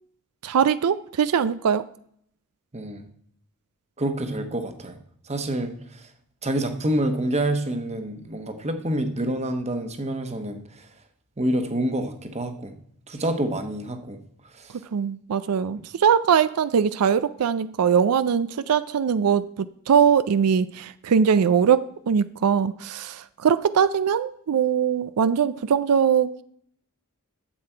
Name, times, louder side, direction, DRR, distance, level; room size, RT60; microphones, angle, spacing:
voice 1, 0.4-1.9 14.9-26.4, right 7 dB, 90° right, 15 dB, 0.4 m, -21 dB
voice 2, 2.7-3.0 4.0-5.0 5.3-6.0 6.4-10.6 11.4-12.7 13.1-14.2 14.6-14.7, right 1 dB, 30° right, 7 dB, 1.1 m, -27 dB
11.5 x 7.7 x 4.5 m, 0.67 s
head